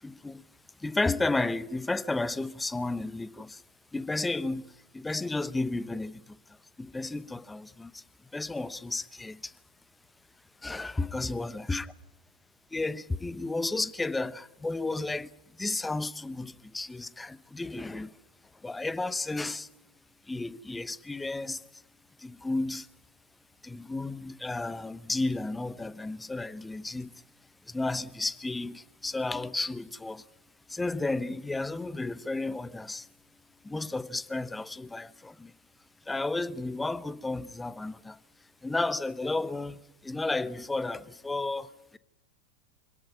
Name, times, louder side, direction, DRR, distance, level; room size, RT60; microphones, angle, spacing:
voice 1, 0.0-0.4 0.8-3.6 3.9-6.4 6.8-8.0 8.3-9.5 10.6-11.8 12.7-15.3 15.6-18.1 18.6-19.7 20.3-21.8 22.2-22.9 23.6-27.2 27.6-30.2 30.7-33.1 33.6-35.5 36.1-38.2 38.6-42.0, left 2 dB, 10° left, 0.9 m, -33 dB
26.0 x 18.0 x 9.4 m
figure-of-eight pair, 90°, 0 cm